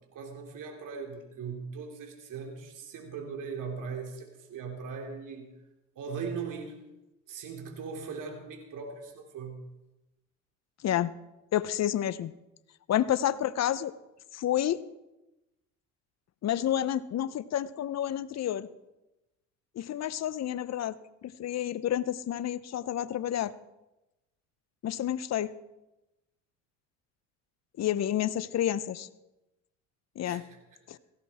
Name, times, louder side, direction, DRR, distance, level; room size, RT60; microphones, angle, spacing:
voice 1, 0.1-5.5 5.9-6.8 7.3-9.6 30.2-30.6, right 5 dB, 55° right, 1 dB, 3.2 m, -39 dB
voice 2, 11.5-12.3 12.9-13.9 14.3-14.8 16.4-18.7 19.8-23.5 24.8-25.5 27.8-29.1 30.2-30.4 30.9-31.0, left 11 dB, 45° left, 16 dB, 0.8 m, -29 dB
17.0 x 16.0 x 4.3 m, 0.98 s
hypercardioid pair, 75°, 37 cm